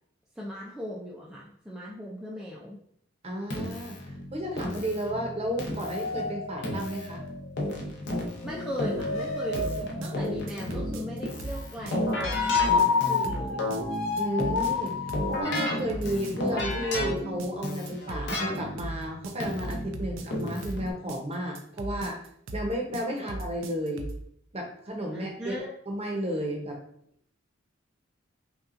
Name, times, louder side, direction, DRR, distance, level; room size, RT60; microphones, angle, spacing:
voice 1, 0.4-2.8 8.4-13.7 25.1-25.7, equal, 5° right, -5 dB, 0.4 m, -38 dB
voice 2, 3.2-7.2 14.2-15.0 15.3-22.2 22.5-24.1 24.5-25.6 25.9-26.8, equal, 30° right, 1 dB, 0.8 m, -33 dB
Keyboard (musical), 3.5-20.9, left 1 dB, 60° left, 0.8 m, -34 dB
sound 1, 5.8-7.8 8.3-10.3 12.1-15.4, left 5 dB, 85° left, 0.5 m, -29 dB
sound 2, 9.6-24.3, right 2 dB, 75° right, 0.4 m, -38 dB
5.5 x 2.3 x 2.5 m, 0.66 s
head